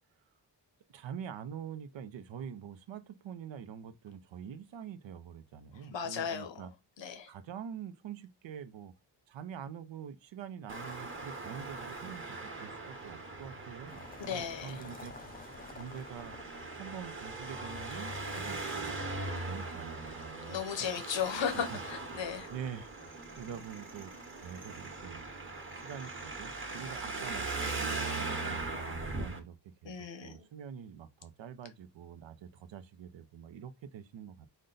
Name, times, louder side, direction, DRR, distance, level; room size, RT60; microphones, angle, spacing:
voice 1, 0.9-6.7 7.3-8.9 9.3-15.1 15.7-16.3 16.8-19.0 19.4-20.7 21.5-21.8 22.5-24.1 24.4-25.2 25.7-29.9 30.2-34.5, right 8 dB, 85° right, 0.7 m, -45 dB
voice 2, 5.9-6.7 7.0-7.3 14.2-14.8 20.4-22.5 29.8-30.4, left 7 dB, 85° left, 0.9 m, -36 dB
Traffic noise roadway noise, 10.7-29.4, right 3 dB, 30° right, 1.1 m, -40 dB
sound 1, 13.9-20.8, left 4 dB, 20° left, 0.4 m, -52 dB
5.1 x 2.2 x 3.8 m
wide cardioid pair, 110°, 44 cm